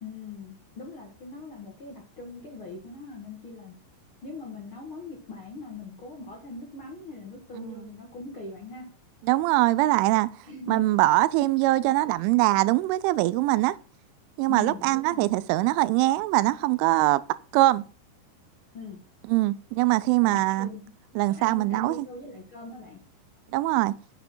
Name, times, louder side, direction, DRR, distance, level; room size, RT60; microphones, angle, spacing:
voice 1, 0.0-3.7 4.2-8.9 10.4-10.9 14.5-15.4 18.7-19.0 20.2-20.9 21.2-23.0, left 3 dB, 85° left, 1.1 m, -41 dB
voice 2, 9.3-10.3 10.7-13.8 14.4-17.2 17.5-17.9 19.3-20.7 21.2-22.1 23.5-24.0, right 18 dB, 90° right, 3.0 m, -22 dB
8.2 x 7.8 x 4.2 m
omnidirectional pair, 5.4 m